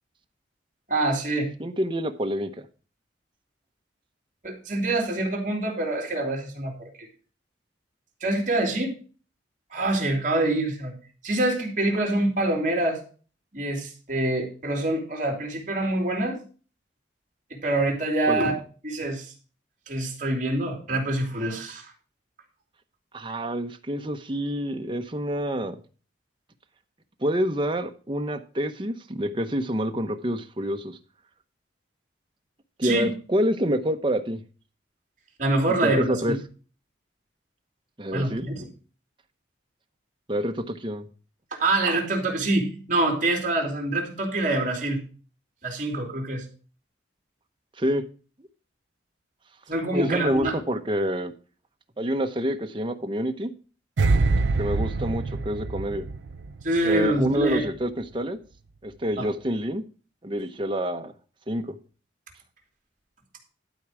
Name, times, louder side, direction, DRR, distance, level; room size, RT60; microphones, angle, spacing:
voice 1, 0.9-1.5 4.4-6.9 8.2-8.9 9.7-10.9 11.2-13.0 13.5-16.4 17.6-18.5 18.8-19.3 19.9-21.9 32.8-33.1 35.4-36.1 38.1-38.6 41.5-45.0 45.6-46.4 49.7-50.5 55.0-55.1 56.6-57.7 59.2-59.3, right 2 dB, 45° right, 1 dB, 3.1 m, -25 dB
voice 2, 1.6-2.7 18.3-18.4 23.1-25.8 27.2-31.0 32.8-34.4 35.8-36.4 38.0-38.5 40.3-41.1 47.8-48.0 49.9-51.3 52.0-53.5 54.6-56.1 56.8-58.4 58.8-59.8 60.2-61.1 61.5-61.8, equal, 25° right, 5 dB, 0.9 m, -27 dB
sound 1, 54.0-57.2 57.4-57.7, right 3 dB, 85° right, 0.6 m, -25 dB
12.0 x 4.7 x 6.2 m, 0.37 s
head